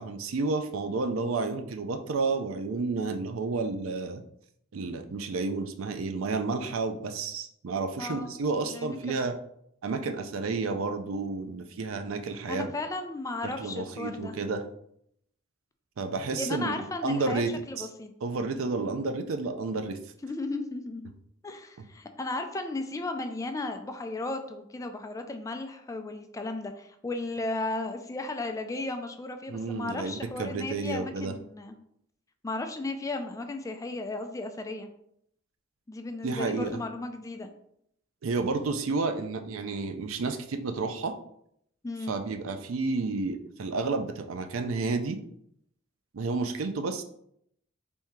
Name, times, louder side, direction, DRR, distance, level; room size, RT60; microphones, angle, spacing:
voice 1, 0.0-4.2 4.7-9.3 9.8-12.7 13.4-14.6 16.0-17.5 17.8-17.9 18.2-20.0 29.5-31.4 36.2-36.8 38.2-41.1 42.1-45.2 46.1-47.0, right 3 dB, 85° right, 8 dB, 0.5 m, -31 dB
voice 2, 8.6-9.2 12.5-14.3 16.4-17.4 17.7-18.1 20.2-21.0 21.4-31.7 32.4-34.9 35.9-37.5 41.8-42.2, left 2 dB, 15° left, 6 dB, 0.3 m, -35 dB
3.5 x 2.7 x 4.4 m, 0.72 s
head